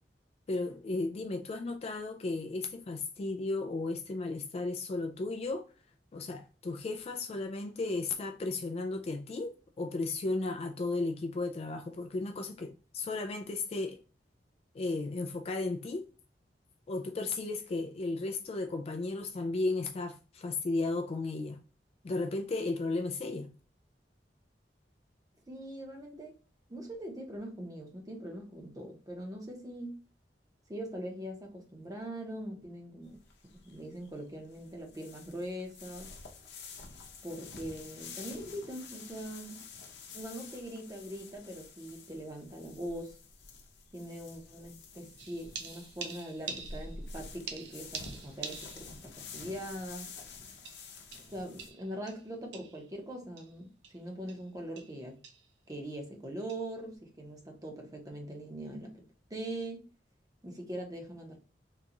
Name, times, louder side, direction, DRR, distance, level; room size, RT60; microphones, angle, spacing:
voice 1, 0.5-5.7 6.1-14.0 14.7-16.1 16.9-21.6 22.0-23.5, left 3 dB, 35° left, 0.3 m, -34 dB
voice 2, 25.5-26.3 26.7-30.0 30.7-33.2 33.5-36.1 37.2-39.6 40.1-43.2 43.9-50.1 51.3-55.2 55.7-59.0 59.3-59.8 60.4-61.4, right 1 dB, 20° right, 0.8 m, -42 dB
sound 1, 33.0-51.7, left 4 dB, 70° left, 0.7 m, -49 dB
sound 2, 45.2-47.1 47.5-49.0 49.4-49.5 50.6-52.9 53.4-53.5 53.8-54.0 54.3-54.5 54.8-55.0 55.2-55.5 56.5-56.7, right 5 dB, 75° right, 0.5 m, -45 dB
3.8 x 2.3 x 2.8 m
head